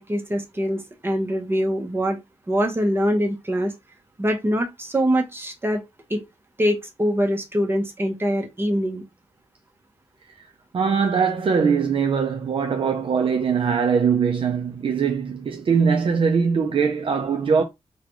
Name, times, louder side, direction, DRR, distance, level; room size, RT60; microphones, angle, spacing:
voice 1, 0.0-2.2 2.5-3.7 4.2-5.8 6.1-6.2 6.6-9.0, equal, 20° right, 0.9 m, -23 dB
voice 2, 10.7-17.6, right 6 dB, 55° right, 0.5 m, -21 dB
3.8 x 2.3 x 3.0 m
wide cardioid pair, 120°, 11 cm